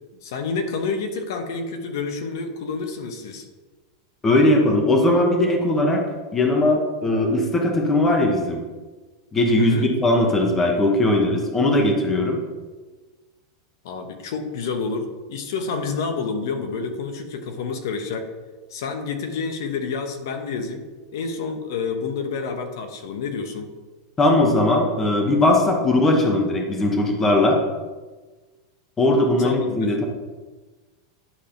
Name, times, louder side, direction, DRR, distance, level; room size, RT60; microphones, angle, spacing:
voice 1, 0.2-3.5 9.6-9.9 13.8-18.3 18.7-20.8 21.1-23.7 29.4-29.9, left 4 dB, 65° left, 6 dB, 1.1 m, -29 dB
voice 2, 4.2-6.0 6.3-8.6 9.3-12.4 24.2-27.6 29.0-30.0, left 1 dB, 10° left, 1 dB, 0.9 m, -19 dB
10.0 x 3.5 x 5.7 m, 1.3 s
supercardioid pair, 170°, 2 cm